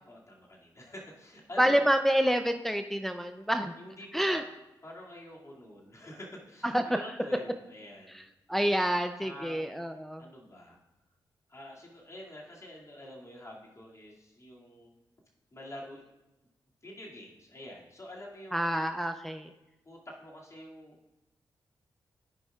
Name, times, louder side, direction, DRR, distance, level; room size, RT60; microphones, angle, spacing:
voice 1, 0.1-1.9 3.8-4.4 4.8-8.3 9.2-9.9 10.2-10.8 11.5-15.0 15.5-16.0 16.8-18.8 19.8-21.0, left 1 dB, 35° left, -3 dB, 2.4 m, -47 dB
voice 2, 1.6-3.7 4.1-4.4 6.6-7.0 8.1-8.2 8.5-10.2 18.5-19.5, equal, 5° left, 6 dB, 0.5 m, -28 dB
13.5 x 5.3 x 2.4 m, 0.96 s
supercardioid pair, 45°, 9 cm